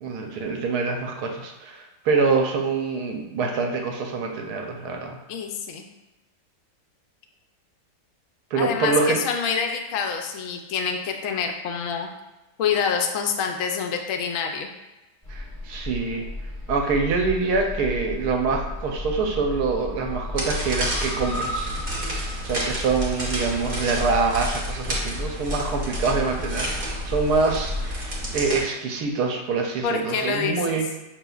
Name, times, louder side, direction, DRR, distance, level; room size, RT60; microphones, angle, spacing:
voice 1, 0.0-5.2 8.5-9.2 15.3-16.3 16.7-21.7 22.4-30.9, right 4 dB, 70° right, 2 dB, 1.1 m, -25 dB
voice 2, 5.3-5.9 8.5-12.1 12.6-14.7 29.8-30.8, left 6 dB, 75° left, 4 dB, 0.7 m, -26 dB
sound 1, 15.2-28.3, left 1 dB, 35° left, 0.6 m, -33 dB
sound 2, 20.4-28.6, right 1 dB, 45° right, 0.6 m, -31 dB
5.9 x 3.1 x 2.3 m, 1.1 s
omnidirectional pair, 1.9 m